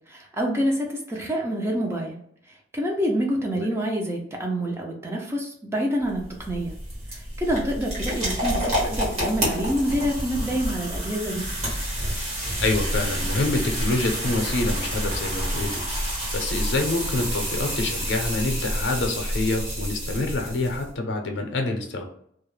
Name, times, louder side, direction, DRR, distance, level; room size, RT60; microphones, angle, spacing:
voice 1, 0.1-2.2 2.7-6.7 7.1-11.5, equal, 15° right, 0 dB, 0.4 m, -27 dB
sound 1, 6.0-20.9, equal, 35° right, 1.2 m, -28 dB
voice 2, 12.6-15.8 16.3-22.1, left 2 dB, 70° left, 3 dB, 0.5 m, -26 dB
2.3 x 2.0 x 3.1 m, 0.69 s
head